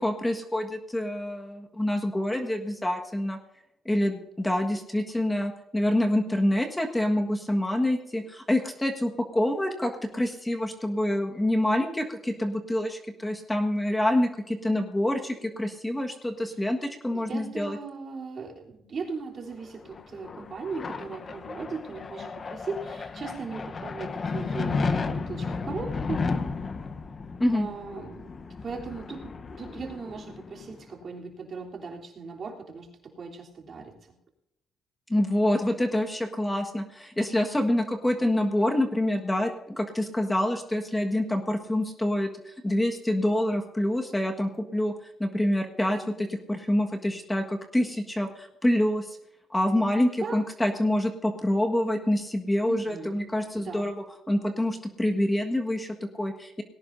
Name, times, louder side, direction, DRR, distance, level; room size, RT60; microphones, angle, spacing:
voice 1, 0.0-3.4 3.8-17.8 27.4-27.7 35.1-44.9 45.2-49.2 49.5-56.6, left 1 dB, 10° left, 4 dB, 1.6 m, -26 dB
voice 2, 17.1-26.2 27.5-28.3 28.6-29.3 29.6-34.2 50.2-50.4 52.7-53.2 53.5-53.9, right 4 dB, 50° right, -1 dB, 3.4 m, -38 dB
sound 1, 19.6-30.9, left 4 dB, 40° left, 0.9 m, -34 dB
19.0 x 17.0 x 2.7 m, 0.88 s
cardioid pair, 90°, 0 cm